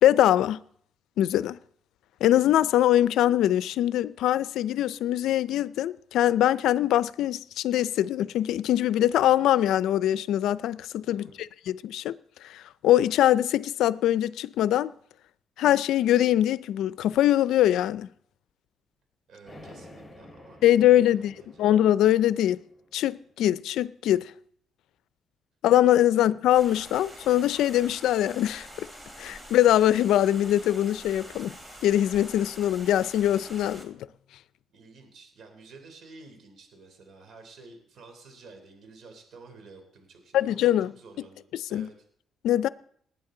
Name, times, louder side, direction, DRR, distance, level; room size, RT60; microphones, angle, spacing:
voice 1, 0.0-0.6 1.2-1.6 2.2-12.1 12.5-14.9 15.6-18.1 20.6-21.3 21.6-22.6 22.9-24.3 25.6-28.9 29.2-31.5 31.8-34.0 40.3-40.9 41.7-41.9 42.4-42.7, left 12 dB, 85° left, 0.4 m, -23 dB
voice 2, 11.1-11.4 19.3-21.7 26.1-26.3 34.7-41.9, right 3 dB, 65° right, 3.4 m, -51 dB
sound 1, 19.4-23.4, left 1 dB, 5° left, 4.2 m, -50 dB
sound 2, 26.6-33.8, equal, 20° right, 2.8 m, -46 dB
19.5 x 9.3 x 3.8 m
cardioid pair, 90°, 0 cm